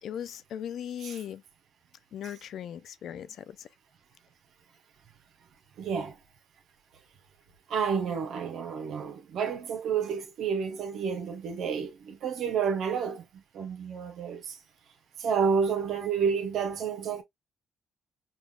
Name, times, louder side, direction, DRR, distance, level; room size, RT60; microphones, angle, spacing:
voice 1, 0.0-1.4 2.1-3.7, left 9 dB, 70° left, 0.4 m, -38 dB
voice 2, 5.8-6.2 7.7-14.6 15.2-17.2, right 6 dB, 70° right, 0.8 m, -30 dB
5.2 x 2.3 x 2.2 m
cardioid pair, 90°, 0 cm